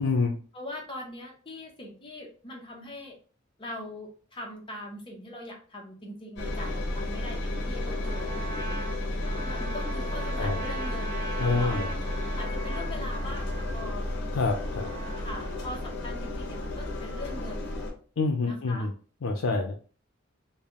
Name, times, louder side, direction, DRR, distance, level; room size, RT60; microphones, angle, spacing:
voice 1, 0.0-0.3 10.4-10.6 11.4-11.9 14.3-14.9 18.2-18.9 19.2-19.8, left 3 dB, 85° left, 2 dB, 0.5 m, -27 dB
voice 2, 0.5-3.2 3.6-8.3 9.4-11.8 12.4-14.0 15.2-17.7 18.4-18.9, left 1 dB, 25° left, -1 dB, 1.0 m, -41 dB
Engine, 6.4-17.9, left 1 dB, 60° left, 1.0 m, -32 dB
Trumpet, 7.8-15.9, right 3 dB, 50° right, 1.1 m, -41 dB
3.4 x 2.4 x 3.5 m, 0.39 s
head